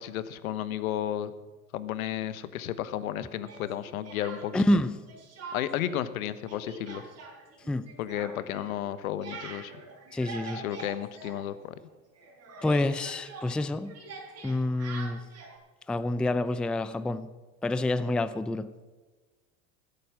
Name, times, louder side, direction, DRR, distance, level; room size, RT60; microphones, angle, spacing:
voice 1, 0.0-1.3 1.7-4.6 5.5-7.0 8.0-9.7 10.6-11.7, left 11 dB, 75° left, 14 dB, 1.1 m, -33 dB
Speech, 3.4-4.8 5.1-5.9 6.2-11.9 12.1-15.6, right 3 dB, 35° right, 4.7 m, -44 dB
voice 2, 4.5-5.0 7.7-7.9 10.1-10.6 12.6-13.9 14.4-15.2 15.9-17.3 17.6-18.7, left 1 dB, ahead, 13 dB, 0.4 m, -27 dB
15.5 x 8.6 x 6.0 m, 1.3 s
hypercardioid pair, 95°, 42 cm